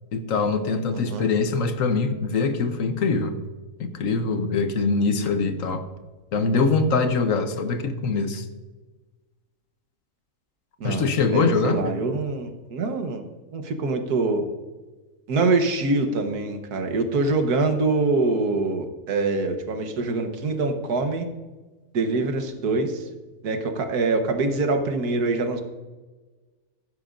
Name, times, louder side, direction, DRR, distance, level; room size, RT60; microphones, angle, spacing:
voice 1, 0.1-3.3 3.8-5.8 6.3-8.5 10.8-11.8, left 4 dB, 60° left, 9 dB, 1.2 m, -23 dB
voice 2, 0.9-1.3 10.8-11.0 11.3-13.2 13.5-14.4 15.3-21.3 21.9-23.1 23.4-25.6, right 3 dB, 85° right, 6 dB, 1.6 m, -24 dB
15.5 x 11.0 x 2.5 m, 1.3 s
omnidirectional pair, 1.6 m